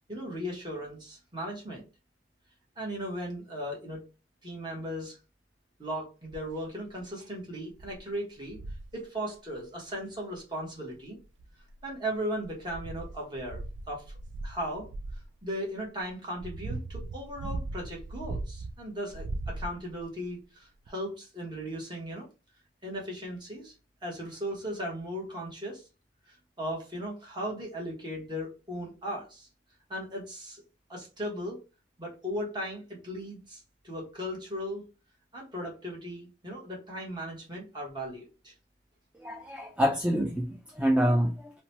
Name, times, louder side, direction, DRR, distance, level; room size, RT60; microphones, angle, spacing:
voice 1, 0.1-1.8 2.8-4.0 4.4-5.2 5.8-8.6 8.9-11.2 11.8-14.1 14.4-14.9 15.4-22.3 22.8-23.7 24.0-25.9 26.3-29.5 29.9-30.6 30.9-31.6 32.0-34.8 35.3-38.5, equal, 25° right, 1.0 m, -37 dB
sound 1, 6.3-6.6 7.2-7.3 7.8-8.0 8.5-8.9 10.3-10.4 11.2-11.9 12.4-15.3 16.0-18.7 19.1-20.0 20.9-21.0, right 2 dB, 85° right, 0.3 m, -38 dB
voice 2, 39.2-41.5, equal, 5° right, 0.3 m, -27 dB
2.8 x 2.1 x 2.8 m
head